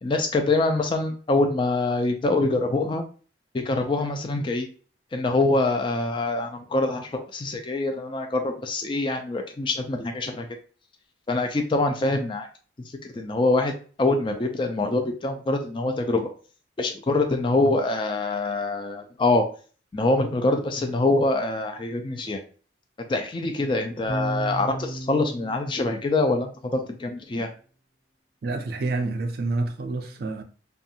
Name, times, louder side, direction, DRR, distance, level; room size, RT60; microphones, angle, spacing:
voice 1, 0.0-3.0 3.5-4.7 5.1-10.5 11.3-12.5 12.9-16.3 16.8-19.5 19.9-22.4 23.1-27.5, left 2 dB, 25° left, 0.3 m, -25 dB
sound 1, 24.1-26.7, right 1 dB, 65° left, 0.9 m, -34 dB
voice 2, 28.4-30.4, right 3 dB, 55° right, 0.4 m, -28 dB
2.5 x 2.3 x 2.7 m
head